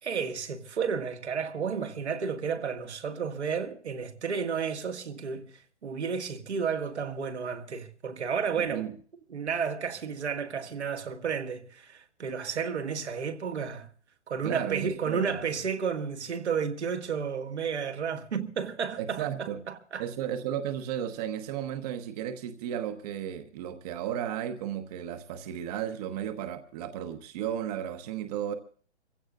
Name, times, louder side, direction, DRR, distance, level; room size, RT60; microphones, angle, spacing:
voice 1, 0.0-5.5 5.8-8.9 9.3-13.9 14.3-20.0, right 6 dB, 70° right, 1.7 m, -32 dB
voice 2, 8.6-8.9 14.4-15.3 19.0-19.6 20.0-28.5, right 10 dB, 35° right, 1.1 m, -34 dB
26.0 x 16.0 x 2.5 m
figure-of-eight pair, 130°, 34 cm